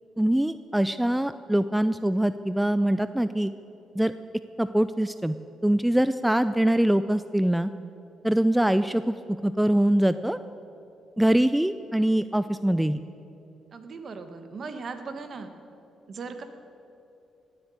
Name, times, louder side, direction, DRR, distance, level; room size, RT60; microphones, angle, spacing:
voice 1, 0.2-3.5 4.0-4.1 4.6-5.3 5.6-7.7 8.2-9.1 9.4-10.4 11.2-13.0, right 1 dB, 5° right, 12 dB, 0.4 m, -23 dB
voice 2, 13.7-15.5 16.1-16.4, right 4 dB, 50° right, 8 dB, 1.4 m, -38 dB
17.0 x 8.1 x 9.3 m, 2.8 s
cardioid pair, 90°, 0 cm